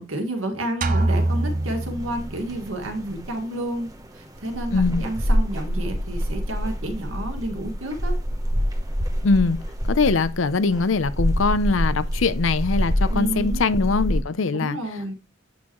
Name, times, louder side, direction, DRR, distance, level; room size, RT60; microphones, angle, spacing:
voice 1, 0.0-3.9 4.1-8.2 13.1-13.6 14.5-15.1, right 1 dB, 85° right, 1.9 m, -30 dB
sound 1, 0.8-2.7, right 2 dB, 40° right, 0.6 m, -24 dB
sound 2, 1.0-14.2, equal, 20° right, 0.9 m, -27 dB
voice 2, 4.7-5.0 9.2-9.6 9.9-14.8, left 4 dB, 80° left, 0.6 m, -22 dB
8.6 x 5.6 x 3.1 m
head